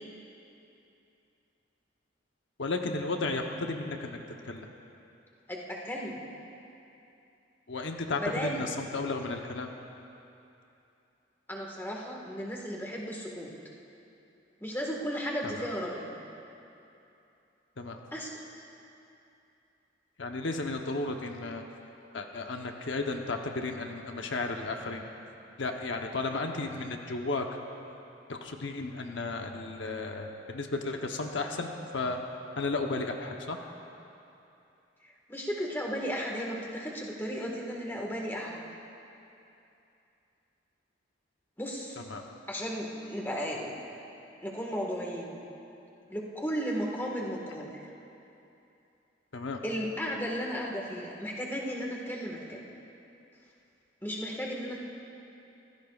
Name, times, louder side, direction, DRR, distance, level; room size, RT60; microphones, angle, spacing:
voice 1, 2.6-4.2 4.4-4.7 7.7-9.7 15.4-15.7 17.8-18.0 20.2-21.6 22.1-25.0 25.6-27.6 28.3-32.2 32.6-33.6 42.1-42.2 49.3-49.6, left 3 dB, 80° left, 3 dB, 0.9 m, -34 dB
voice 2, 5.5-6.2 8.1-8.6 11.5-13.5 14.6-16.1 18.1-18.3 35.0-38.6 41.6-42.0 42.5-43.8 44.4-45.3 46.1-47.8 49.6-52.6 54.0-54.8, equal, 10° left, -2 dB, 1.6 m, -35 dB
24.0 x 16.0 x 2.4 m, 2.8 s
head